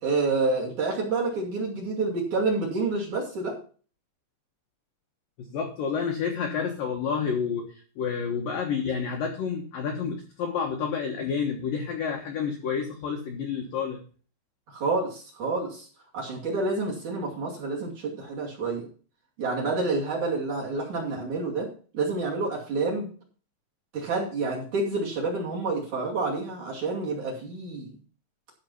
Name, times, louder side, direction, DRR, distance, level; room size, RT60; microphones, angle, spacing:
voice 1, 0.0-3.6 14.7-15.9 16.1-18.9 19.4-21.7 21.9-23.1 23.9-27.9, right 3 dB, 45° right, -3 dB, 3.2 m, -28 dB
voice 2, 5.4-14.0, left 6 dB, 75° left, 2 dB, 2.1 m, -29 dB
13.5 x 5.2 x 5.8 m, 0.40 s
omnidirectional pair, 5.9 m